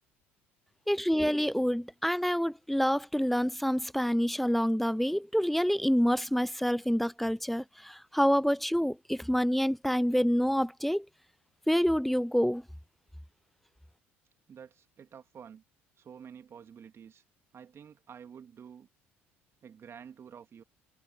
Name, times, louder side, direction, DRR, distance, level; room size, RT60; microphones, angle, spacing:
voice 1, 0.9-11.1 11.7-12.6, equal, ahead, 0.6 m, -27 dB
voice 2, 14.5-15.6 16.0-17.2 17.5-18.9 19.6-20.6, right 7 dB, 45° right, 3.2 m, -49 dB
hypercardioid pair, 65°, 6 cm